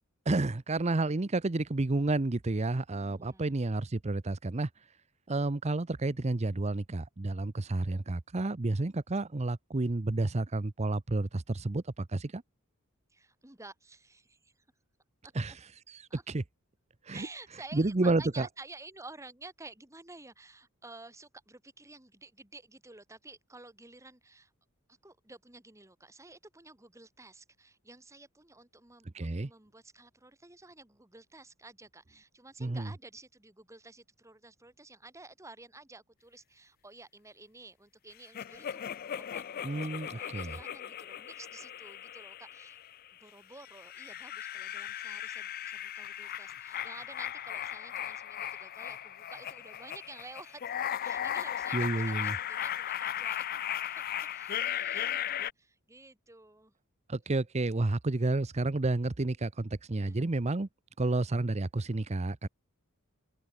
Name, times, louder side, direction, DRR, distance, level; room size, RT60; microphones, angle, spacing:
voice 1, 0.3-4.7 5.3-12.4 15.3-15.5 15.9-16.0 16.3-16.4 17.1-17.3 17.7-18.5 29.1-29.5 32.6-32.9 39.6-40.5 51.7-52.3 57.1-60.7 61.0-62.5, right 2 dB, 30° right, 0.7 m, -30 dB
voice 2, 2.9-3.6 13.1-14.6 15.2-15.3 16.1-16.2 17.1-24.5 25.0-39.7 40.0-42.8 43.1-50.8 51.0-56.7 60.0-60.2, right 3 dB, 15° right, 2.2 m, -52 dB
sound 1, 38.3-43.1 43.6-55.5, left 10 dB, 40° left, 0.4 m, -37 dB
open air
head